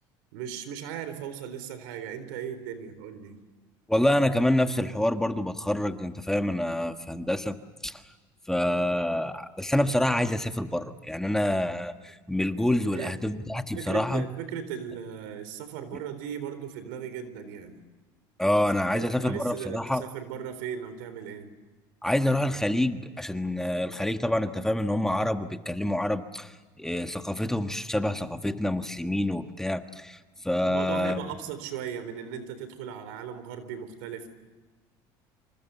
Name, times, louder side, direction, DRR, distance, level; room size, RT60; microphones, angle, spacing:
voice 1, 0.3-3.4 12.9-13.1 13.7-17.8 18.5-18.6 18.9-21.5 30.6-34.3, right 8 dB, 90° right, 11 dB, 3.9 m, -37 dB
voice 2, 3.9-7.6 7.8-8.0 8.5-14.2 18.4-20.0 22.0-30.2 30.4-31.3, left 1 dB, 5° left, 7 dB, 1.5 m, -27 dB
27.0 x 26.5 x 7.0 m, 1.3 s
supercardioid pair, 105°, 10 cm